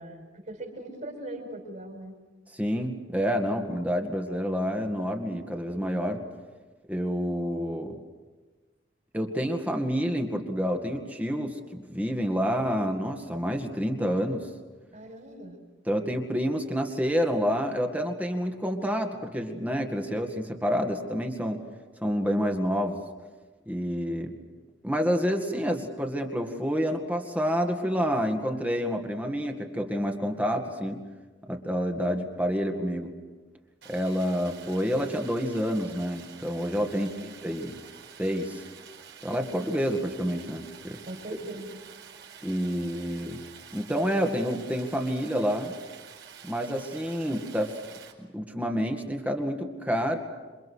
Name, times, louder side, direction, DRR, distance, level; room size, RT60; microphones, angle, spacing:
voice 1, 0.0-2.2 14.9-15.6 36.9-37.3 41.1-41.7, right 1 dB, 45° right, 3 dB, 5.5 m, -40 dB
voice 2, 2.5-6.2 6.9-8.0 9.1-14.5 15.9-21.6 22.0-23.0 23.7-24.3 24.8-31.0 31.5-33.1 33.9-37.1 37.4-37.8 38.2-38.6 39.2-41.0 41.3-41.4 42.4-43.4 43.7-45.7 46.4-47.7 48.3-50.2, equal, 10° right, 4 dB, 2.1 m, -28 dB
Stream, 33.8-48.1, right 7 dB, 70° right, 4.8 m, -48 dB
28.0 x 25.0 x 6.5 m, 1.3 s
head